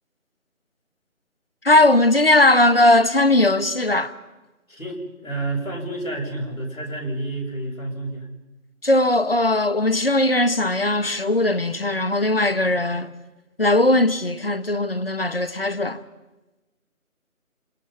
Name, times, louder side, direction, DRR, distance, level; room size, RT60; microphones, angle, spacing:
voice 1, 1.6-4.1 8.8-13.1 13.6-16.0, left 2 dB, 45° left, 1.3 m, -19 dB
voice 2, 4.7-8.3, right 2 dB, 70° left, 7.9 m, -29 dB
28.0 x 24.0 x 5.6 m
figure-of-eight pair, 165°, 42 cm